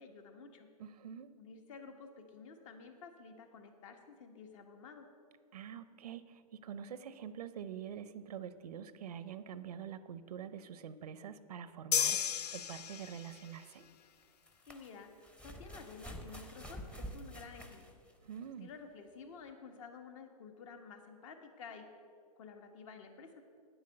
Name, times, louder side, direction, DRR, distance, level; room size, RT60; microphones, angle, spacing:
voice 1, 0.0-0.7 1.4-5.1 14.7-15.1 15.4-17.8 18.6-21.8 22.4-23.3, left 5 dB, 55° left, 5 dB, 1.4 m, -51 dB
voice 2, 0.8-1.3 5.5-12.2 12.5-13.8 18.2-18.7, right 8 dB, 80° right, 14 dB, 0.6 m, -46 dB
sound 1, 11.9-13.5, left 8 dB, 85° left, 0.5 m, -33 dB
sound 2, 12.2-12.3 14.2-18.5 19.5-19.6, equal, 5° left, 0.7 m, -48 dB
9.3 x 7.9 x 6.5 m, 2.2 s
hypercardioid pair, 135°, 20 cm